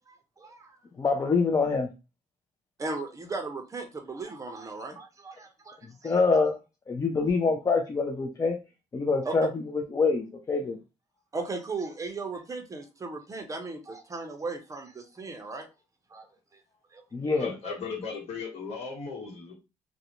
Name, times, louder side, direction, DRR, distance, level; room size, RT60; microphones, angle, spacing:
voice 1, 0.1-0.8 2.8-6.2 9.2-9.3 11.3-15.7 16.1-16.3 16.9-17.0 17.3-17.5, right 3 dB, 25° right, 0.5 m, -37 dB
voice 2, 1.0-1.9 6.0-6.5 6.9-8.6 8.9-9.6 9.9-10.8 17.1-17.5, left 4 dB, 25° left, 0.4 m, -25 dB
voice 3, 17.4-19.5, left 5 dB, 60° left, 1.1 m, -36 dB
2.4 x 2.0 x 2.8 m
cardioid pair, 105°, 12 cm